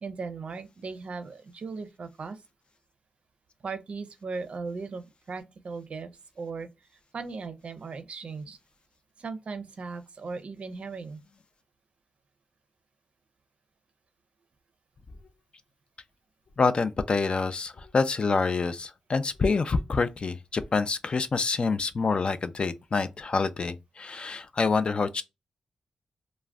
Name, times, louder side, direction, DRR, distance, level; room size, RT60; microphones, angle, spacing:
voice 1, 0.0-2.4 3.6-6.1 6.4-6.7 7.1-8.6 9.2-11.2, right 4 dB, 65° right, 0.4 m, -37 dB
voice 2, 16.6-25.2, left 4 dB, 50° left, 0.3 m, -27 dB
2.4 x 2.0 x 3.3 m
cardioid pair, 75°, 2 cm